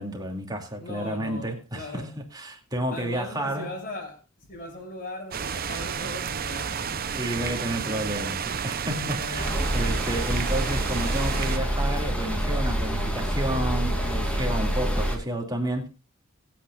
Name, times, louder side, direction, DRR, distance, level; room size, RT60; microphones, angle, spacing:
voice 1, 0.0-3.8 7.1-15.9, right 1 dB, 20° right, 2.6 m, -31 dB
voice 2, 0.8-2.1 2.9-4.2 4.5-8.3 9.2-9.7, left 1 dB, 40° left, 6.3 m, -39 dB
sound 1, 5.3-11.6, right 7 dB, 45° right, 0.7 m, -31 dB
sound 2, 9.4-15.2, equal, 5° left, 2.9 m, -27 dB
24.0 x 8.7 x 2.5 m
head